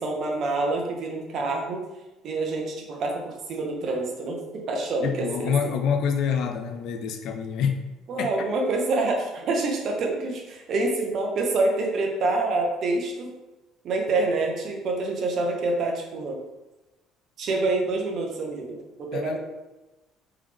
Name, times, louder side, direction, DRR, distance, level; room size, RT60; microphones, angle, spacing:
voice 1, 0.0-1.8 2.2-5.8 8.1-13.3 13.8-16.4 17.4-19.4, right 2 dB, 55° right, 1 dB, 0.9 m, -27 dB
voice 2, 5.0-7.8 8.2-8.3 19.1-19.4, left 7 dB, 65° left, 6 dB, 0.5 m, -26 dB
3.5 x 3.3 x 3.4 m, 1.1 s
supercardioid pair, 90°, 0 cm